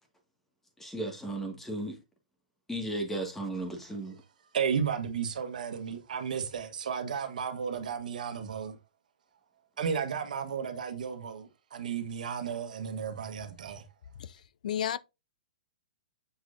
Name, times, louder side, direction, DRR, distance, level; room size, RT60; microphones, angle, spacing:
voice 1, 0.8-2.0 2.7-4.2, right 1 dB, 5° left, 1.9 m, -35 dB
voice 2, 4.5-8.8 9.8-13.8, right 7 dB, 75° right, 1.5 m, -33 dB
voice 3, 14.2-15.0, left 9 dB, 70° left, 0.4 m, -33 dB
7.2 x 6.2 x 2.7 m
hypercardioid pair, 140°, 4 cm